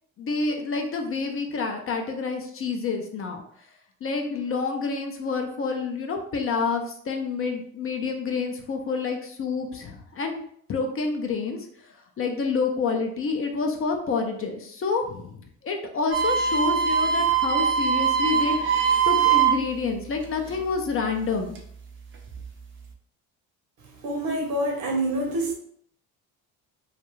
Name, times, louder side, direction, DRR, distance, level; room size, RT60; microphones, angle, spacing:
voice 1, 0.2-3.4 4.0-10.4 10.7-21.6, left 4 dB, 35° left, 0.4 m, -28 dB
sound 1, 16.1-19.8 20.1-21.6 22.1-22.6, right 7 dB, 30° right, 0.5 m, -23 dB
voice 2, 24.0-25.5, right 1 dB, 60° right, 0.9 m, -26 dB
2.3 x 2.2 x 3.0 m
supercardioid pair, 80°, 39 cm